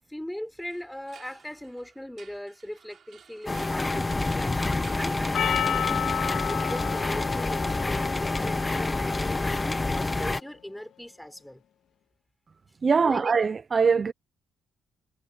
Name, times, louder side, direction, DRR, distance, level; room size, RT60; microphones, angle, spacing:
voice 1, 0.1-6.0 6.5-11.6 13.0-13.2, left 1 dB, 5° left, 4.5 m, -39 dB
sound 1, 0.6-6.3, right 7 dB, 55° right, 5.6 m, -53 dB
sound 2, 3.5-10.4, left 2 dB, 20° left, 1.4 m, -28 dB
Percussion, 5.3-9.8, left 10 dB, 70° left, 2.5 m, -32 dB
voice 2, 12.8-14.1, right 5 dB, 35° right, 0.8 m, -22 dB
cardioid pair, 90°, 0 cm